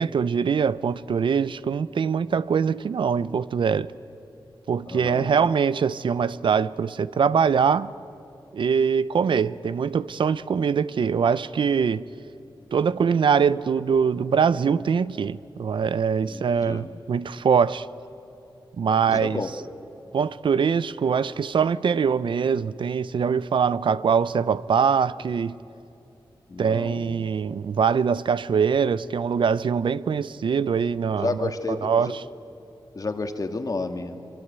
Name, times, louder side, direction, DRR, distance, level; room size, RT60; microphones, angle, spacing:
voice 1, 0.0-3.9 4.7-7.9 8.5-12.0 12.7-17.9 18.8-19.4 20.1-25.6 26.6-32.2, right 6 dB, 75° right, 0.5 m, -23 dB
voice 2, 4.9-5.5 16.3-16.9 19.1-19.5 26.5-27.3 31.2-32.1 32.9-34.2, left 3 dB, 45° left, 1.8 m, -31 dB
25.5 x 23.5 x 8.2 m
wide cardioid pair, 100°, 8 cm